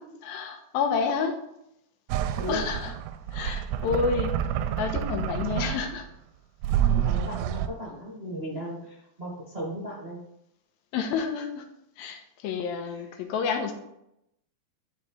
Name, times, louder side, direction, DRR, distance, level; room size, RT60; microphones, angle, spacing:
voice 1, 0.2-1.4 2.5-3.0 3.3-4.4 4.8-6.1 10.9-11.7 12.0-13.7, left 5 dB, 90° left, 5 dB, 2.7 m, -29 dB
sound 1, 2.1-6.1 6.6-7.7, right 10 dB, 90° right, 2.4 m, -28 dB
voice 2, 6.9-10.2 12.8-13.1, right 1 dB, 45° right, -5 dB, 0.7 m, -36 dB
12.5 x 4.5 x 3.2 m, 0.82 s
omnidirectional pair, 4.2 m